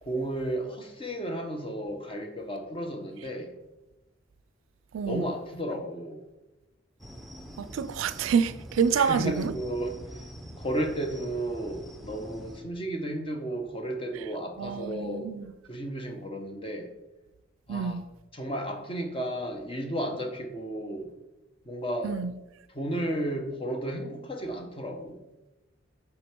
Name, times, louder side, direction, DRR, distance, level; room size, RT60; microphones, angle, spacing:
voice 1, 0.0-3.5 5.1-6.2 8.9-10.3 10.6-15.3 15.7-16.9 17.7-18.0 18.3-21.1 21.6-22.2 22.7-25.2, right 1 dB, 30° left, 1.0 m, -33 dB
voice 2, 4.9-5.3 7.6-9.5 14.6-15.5 17.7-18.1 22.0-22.3, right 6 dB, 85° right, 0.4 m, -28 dB
sound 1, 7.0-12.6, equal, ahead, 0.7 m, -44 dB
6.7 x 5.2 x 4.5 m
head